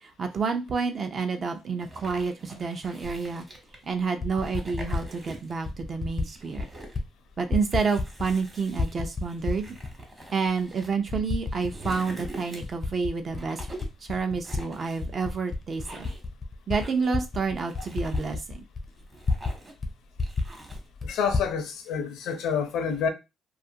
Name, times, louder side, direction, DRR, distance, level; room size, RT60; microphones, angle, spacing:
voice 1, 0.0-3.5 3.8-6.6 7.4-9.7 10.3-13.7 14.1-16.1 16.7-18.6, right 5 dB, 45° right, 0.5 m, -29 dB
sound 1, 1.8-3.9 4.3-5.7 6.0-7.0 7.6-10.9 11.3-12.9 13.3-14.0 14.4-15.4 15.7-16.3 16.7-17.2 17.6-18.4 18.9-19.8 20.2-20.9, right 1 dB, 25° right, 1.0 m, -45 dB
Typing, 3.0-3.2 4.0-5.1 5.6-6.3 6.5-7.1 7.3-8.4 8.7-9.9 10.4-10.5 11.1-11.9 12.2-14.6 15.0-19.6 19.8-19.9 20.2-21.5, left 3 dB, 30° left, 0.4 m, -31 dB
voice 2, 21.0-23.1, left 6 dB, 85° left, 0.5 m, -28 dB
2.4 x 2.4 x 2.7 m
cardioid pair, 110°, 0 cm